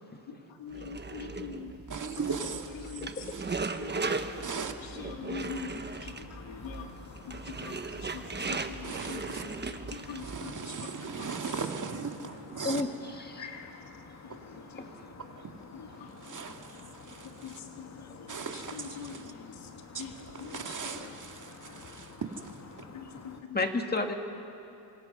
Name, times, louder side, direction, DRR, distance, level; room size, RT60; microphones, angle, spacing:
voice 1, 0.3-3.3 3.8-11.6 13.4-15.0 15.7-16.7 17.1-21.5 22.9-23.7, left 6 dB, 75° left, 2.6 m, -45 dB
sound 1, 0.7-10.4, right 4 dB, 20° right, 1.1 m, -38 dB
voice 2, 1.9-2.8 3.0-3.5 4.4-4.7 8.8-9.4 10.2-12.8 15.2-15.3 16.2-17.6 18.3-19.2 19.9-20.0 20.5-22.6, right 5 dB, 40° right, 2.1 m, -38 dB
sound 2, 4.7-23.4, left 4 dB, 35° left, 1.6 m, -50 dB
voice 3, 12.6-13.4 14.8-14.9 23.5-24.1, left 2 dB, 20° left, 2.2 m, -31 dB
27.5 x 25.5 x 5.6 m
cardioid pair, 95°, 46 cm